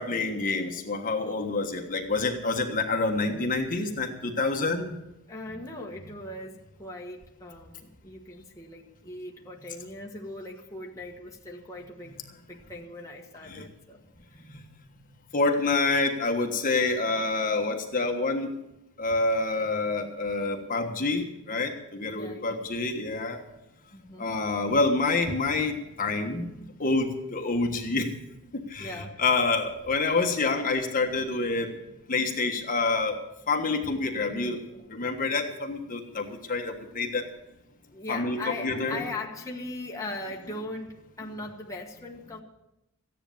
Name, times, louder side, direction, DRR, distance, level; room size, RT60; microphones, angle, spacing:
voice 1, 0.0-5.0 13.5-13.6 14.5-14.6 15.3-18.5 19.0-23.4 24.2-28.1 28.5-31.8 32.1-33.2 33.5-34.6 34.9-37.3 38.1-39.0, left 3 dB, 40° left, 3 dB, 1.4 m, -27 dB
voice 2, 5.3-14.0 22.1-22.6 23.9-24.4 28.8-29.2 37.9-42.4, left 2 dB, 15° left, -1 dB, 1.4 m, -39 dB
15.0 x 10.0 x 7.2 m, 0.93 s
head